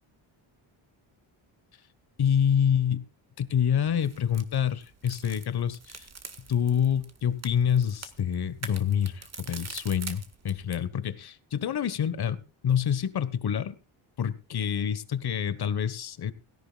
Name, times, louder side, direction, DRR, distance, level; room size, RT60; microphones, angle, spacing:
voice 1, 2.2-3.1 3.4-6.1 6.5-13.8 14.2-16.3, left 8 dB, 50° left, 15 dB, 1.4 m, -27 dB
sound 1, 3.9-10.9, right 5 dB, 30° right, 1.8 m, -45 dB
17.5 x 16.5 x 2.4 m, 0.30 s
cardioid pair, 115°, 48 cm